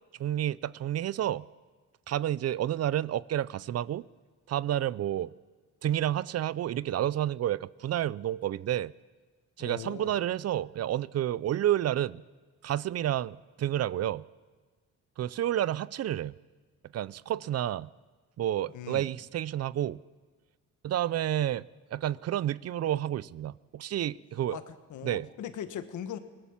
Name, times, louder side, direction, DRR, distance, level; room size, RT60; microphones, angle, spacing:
voice 1, 0.2-1.5 2.1-4.0 4.5-5.3 5.8-8.9 9.6-12.2 12.6-14.2 15.2-16.3 16.9-17.9 18.4-20.0 20.8-24.6 25.0-25.3, right 12 dB, 55° right, 0.6 m, -30 dB
voice 2, 9.6-10.2 18.7-19.1 24.5-26.2, left 9 dB, 75° left, 1.6 m, -40 dB
23.5 x 19.0 x 7.3 m
cardioid pair, 90°, 30 cm